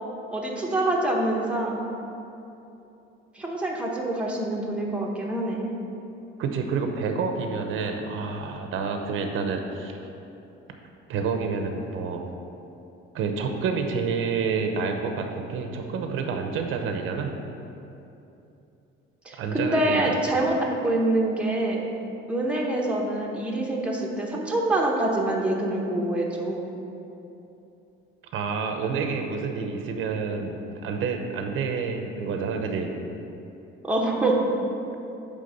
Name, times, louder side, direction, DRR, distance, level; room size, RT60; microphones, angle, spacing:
voice 1, 0.3-1.8 3.3-5.7 19.3-20.6 20.8-21.9 22.3-26.7 33.8-34.4, right 2 dB, 5° right, -3 dB, 0.9 m, -25 dB
voice 2, 6.4-9.9 11.1-12.2 13.1-17.3 19.4-20.2 28.3-32.9, right 5 dB, 70° right, 4 dB, 0.8 m, -28 dB
9.2 x 3.7 x 6.6 m, 2.8 s
cardioid pair, 145°, 21 cm